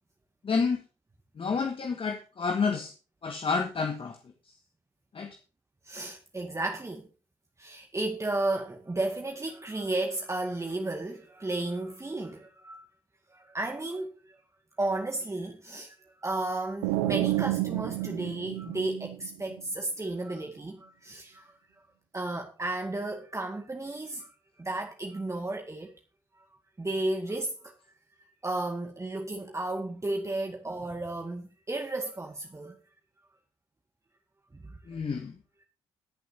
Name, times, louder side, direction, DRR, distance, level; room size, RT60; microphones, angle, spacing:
voice 1, 0.4-0.8 1.3-2.9 3.2-4.2 4.4-4.5 5.1-5.4 34.9-35.3, left 5 dB, 45° left, 1.7 m, -29 dB
voice 2, 5.8-7.1 7.6-12.8 13.3-14.4 14.8-21.8 22.1-24.3 24.6-25.9 26.4-26.5 26.8-27.8 28.2-32.8 34.5-34.8, right 2 dB, 20° right, 2.1 m, -33 dB
sound 1, 16.8-19.6, right 17 dB, 75° right, 0.6 m, -30 dB
22.0 x 7.8 x 2.8 m
hypercardioid pair, 40°, 13 cm